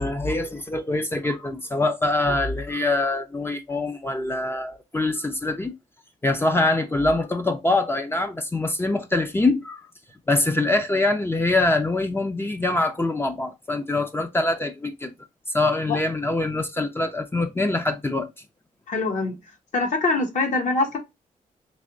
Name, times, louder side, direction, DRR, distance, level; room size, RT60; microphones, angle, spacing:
voice 1, 0.0-5.7 6.2-9.9 10.3-15.1 15.5-18.3, left 2 dB, 15° left, 0.5 m, -24 dB
voice 2, 18.9-19.4 19.7-21.0, left 3 dB, 60° left, 1.2 m, -23 dB
3.4 x 2.8 x 2.5 m
cardioid pair, 100°, 15 cm